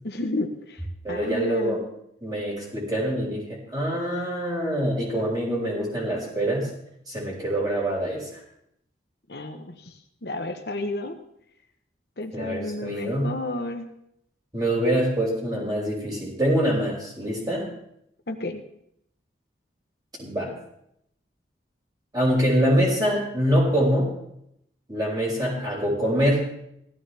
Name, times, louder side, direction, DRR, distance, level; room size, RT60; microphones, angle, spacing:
voice 1, 0.0-0.8 1.1-1.8 9.3-9.9 10.2-11.2 12.2-13.9 18.3-18.6, left 2 dB, 65° left, 5 dB, 1.2 m, -31 dB
voice 2, 1.0-1.8 2.2-6.7 7.1-8.2 12.3-13.3 14.5-17.7 20.2-20.5 22.1-24.1 24.9-26.5, equal, 20° right, -5 dB, 6.3 m, -24 dB
17.0 x 14.5 x 3.5 m, 0.75 s
head